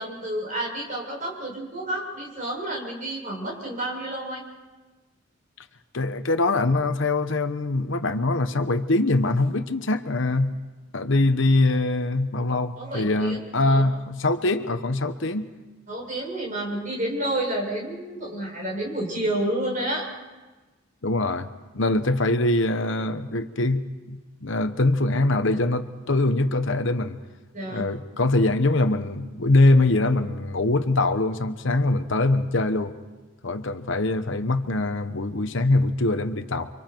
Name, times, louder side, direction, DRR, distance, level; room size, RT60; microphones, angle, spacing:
voice 1, 0.0-4.4 12.8-13.4 13.6-13.9 15.9-20.1 27.5-27.9, right 1 dB, 35° right, -1 dB, 6.7 m, -30 dB
voice 2, 5.9-10.5 10.9-15.5 21.0-21.5 21.7-27.2 27.6-32.9 33.4-36.7, left 2 dB, 60° left, 9 dB, 1.0 m, -23 dB
30.0 x 25.0 x 4.6 m, 1.2 s
head